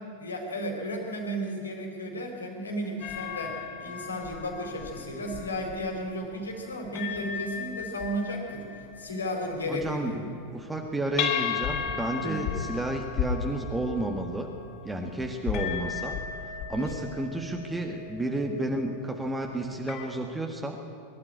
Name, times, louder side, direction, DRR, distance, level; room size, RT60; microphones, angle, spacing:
voice 1, 0.2-10.3 12.2-12.6 16.8-16.9, equal, 75° left, 2 dB, 4.2 m, -34 dB
sound 1, 3.0-6.2 6.7-20.1, left 7 dB, 45° left, 4.9 m, -36 dB
voice 2, 9.7-14.5 14.8-16.2 16.4-20.8, right 1 dB, 5° right, 2 dB, 1.6 m, -31 dB
21.5 x 13.0 x 10.0 m, 2.7 s
figure-of-eight pair, 90°, 0 cm